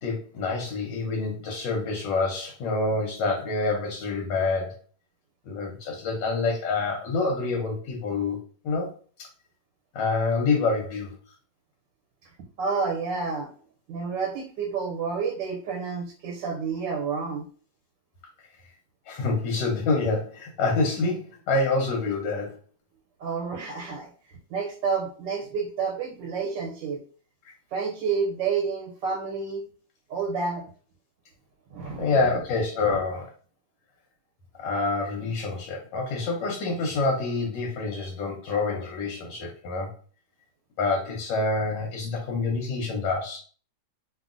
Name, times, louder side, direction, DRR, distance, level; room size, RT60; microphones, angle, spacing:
voice 1, 0.0-4.7 5.5-8.4 8.6-8.9 9.9-11.1 19.1-22.6 32.0-33.3 34.6-39.9 40.8-43.4, left 3 dB, 85° left, -1 dB, 1.4 m, -27 dB
voice 2, 12.6-13.5 13.9-17.5 23.2-27.0 27.7-29.6 30.1-30.7 31.7-32.1 32.9-33.0, right 5 dB, 85° right, 0 dB, 1.3 m, -29 dB
2.8 x 2.7 x 2.4 m, 0.41 s
omnidirectional pair, 1.9 m